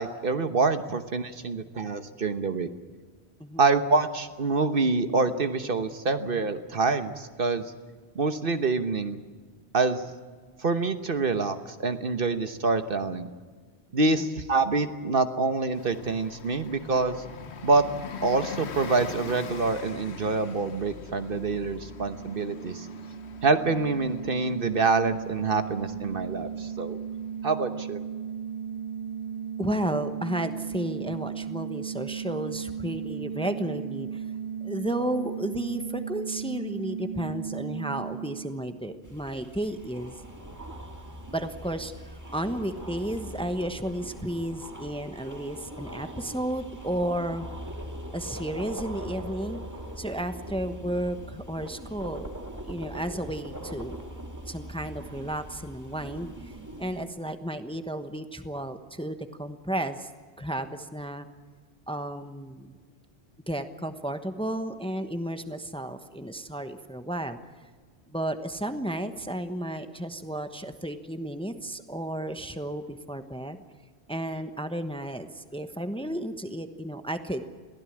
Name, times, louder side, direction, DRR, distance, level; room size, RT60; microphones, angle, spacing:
voice 1, 0.0-2.7 3.6-7.7 8.1-9.2 9.7-10.1 10.6-13.3 13.9-17.2 17.6-17.8 18.2-22.9 23.4-27.0 27.4-28.0, right 3 dB, 55° right, 9 dB, 1.3 m, -26 dB
Bus, 15.7-28.0, left 6 dB, 80° left, 1.3 m, -43 dB
sound 1, 21.7-39.2, right 7 dB, 40° right, 2.1 m, -36 dB
voice 2, 29.6-34.3 34.6-40.2 41.3-47.5 48.1-49.6 50.0-52.3 52.6-53.9 54.5-56.5 56.8-60.1 60.4-61.3 61.9-62.8 63.5-67.4 68.1-73.6 74.1-77.4, right 1 dB, 5° left, 8 dB, 1.1 m, -33 dB
sound 2, 39.0-57.0, right 1 dB, 15° right, 1.9 m, -41 dB
22.5 x 16.5 x 8.7 m, 1.5 s
omnidirectional pair, 1.1 m